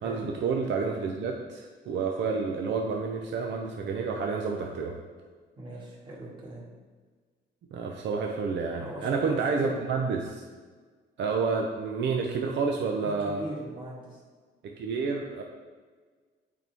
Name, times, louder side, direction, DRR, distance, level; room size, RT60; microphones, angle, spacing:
voice 1, 0.0-5.0 7.7-10.4 11.2-13.4 14.6-15.4, right 4 dB, 65° right, 1 dB, 0.7 m, -29 dB
voice 2, 5.6-6.6 8.8-9.7 13.0-14.2, right 1 dB, 25° right, -5 dB, 1.9 m, -40 dB
8.4 x 4.6 x 3.5 m, 1.5 s
cardioid pair, 90°, 20 cm